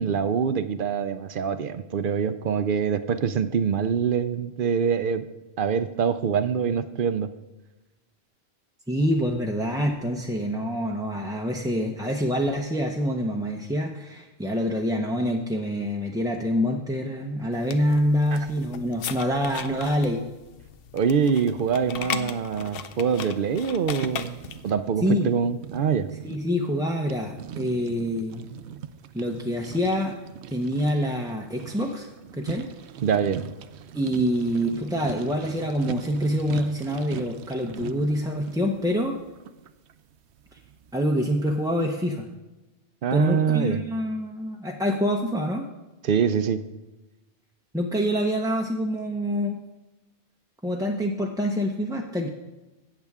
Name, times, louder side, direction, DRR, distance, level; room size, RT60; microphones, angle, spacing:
voice 1, 0.0-5.2 5.6-7.3 18.3-18.4 20.9-24.4 24.6-26.1 33.0-33.5 43.0-43.8 46.0-46.6, right 7 dB, 60° right, 12 dB, 0.7 m, -24 dB
voice 2, 8.9-20.2 25.0-25.3 26.2-28.5 29.1-30.2 30.5-32.7 33.9-39.2 40.5-40.6 40.9-42.3 43.1-45.7 47.7-49.6 50.6-52.3, equal, 5° right, 0 dB, 0.5 m, -26 dB
sound 1, 17.5-24.7, left 7 dB, 65° left, 0.8 m, -37 dB
sound 2, 24.0-41.6, right 9 dB, 90° right, 0.8 m, -41 dB
17.0 x 6.8 x 3.6 m, 1.1 s
omnidirectional pair, 1.1 m